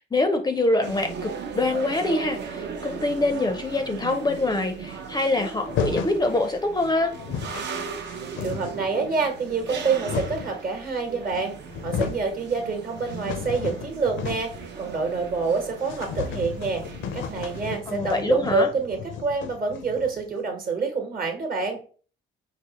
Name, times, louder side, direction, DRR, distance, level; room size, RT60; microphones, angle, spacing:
voice 1, 0.0-7.1 17.9-18.7, left 2 dB, 20° left, 5 dB, 0.4 m, -25 dB
sound 1, 0.8-17.7, right 5 dB, 60° right, 0.6 m, -38 dB
sound 2, 5.7-6.2 6.9-7.0 7.1-7.7 8.1-8.9 9.6-10.6 11.3-11.4 11.7-12.3 12.7-14.7 14.9-15.0 15.3-15.4 15.8-20.3, left 7 dB, 75° left, 0.5 m, -33 dB
voice 2, 8.2-11.5 11.8-16.8 17.1-21.8, right 4 dB, 45° right, 4 dB, 1.1 m, -27 dB
4.8 x 2.0 x 2.8 m, 0.40 s
cardioid pair, 90°, 20 cm